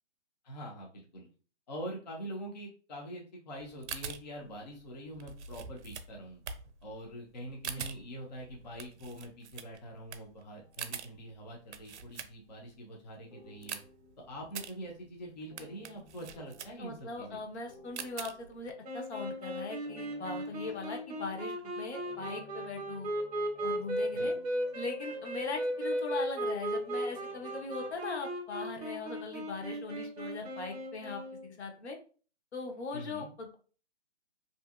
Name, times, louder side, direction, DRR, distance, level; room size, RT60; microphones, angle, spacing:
voice 1, 0.4-1.3 1.7-6.4 6.8-13.8 14.3-17.4 24.1-24.3 32.9-33.3, equal, 40° left, -1 dB, 0.5 m, -44 dB
sound 1, 3.6-12.7 13.1-18.7, right 6 dB, 75° right, 0.5 m, -45 dB
sound 2, 10.5-12.0 13.3-27.9, left 1 dB, 85° left, 1.2 m, -58 dB
voice 2, 16.8-23.1 23.6-24.3 24.7-32.0 32.5-33.5, left 4 dB, 65° left, 3 dB, 0.8 m, -40 dB
sound 3, 18.8-31.5, right 1 dB, 35° right, 0.7 m, -36 dB
2.7 x 2.7 x 2.3 m, 0.39 s
hypercardioid pair, 170°, 35 cm